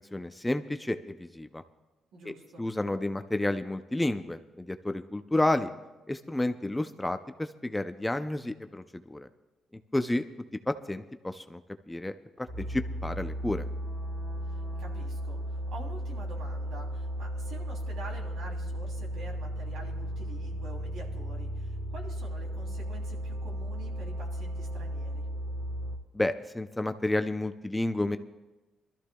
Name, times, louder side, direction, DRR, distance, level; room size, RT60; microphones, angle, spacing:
voice 1, 0.1-1.6 2.3-5.7 6.1-9.3 9.9-10.2 10.7-11.6 11.9-13.7 26.1-28.2, left 1 dB, 10° left, 9 dB, 0.5 m, -31 dB
voice 2, 2.1-2.6 14.8-25.2, right 2 dB, 75° right, -1 dB, 3.0 m, -47 dB
sound 1, 12.5-26.0, equal, 40° right, 2.1 m, -35 dB
24.0 x 13.5 x 2.3 m, 1.1 s
cardioid pair, 90°, 0 cm